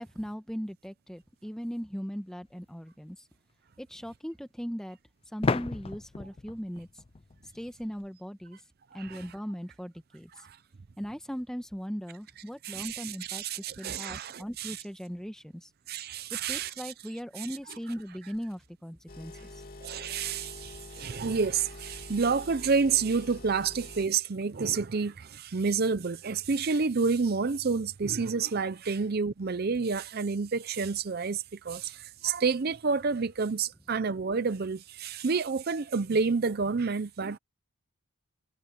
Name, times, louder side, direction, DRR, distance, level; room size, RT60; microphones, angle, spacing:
voice 1, 0.0-3.3 3.8-5.0 5.3-7.0 7.5-8.6 8.9-10.5 11.0-15.7 16.3-19.6, equal, 5° left, 1.2 m, -39 dB
sound 1, 2.4-2.5 5.4-8.1, left 4 dB, 25° left, 0.3 m, -33 dB
voice 2, 8.9-9.2 10.4-10.6 12.6-14.8 15.9-16.9 17.4-17.5 19.3-19.4 19.8-37.4, right 5 dB, 45° right, 0.5 m, -29 dB
sound 2, 19.1-24.1, left 2 dB, 40° left, 3.2 m, -46 dB
head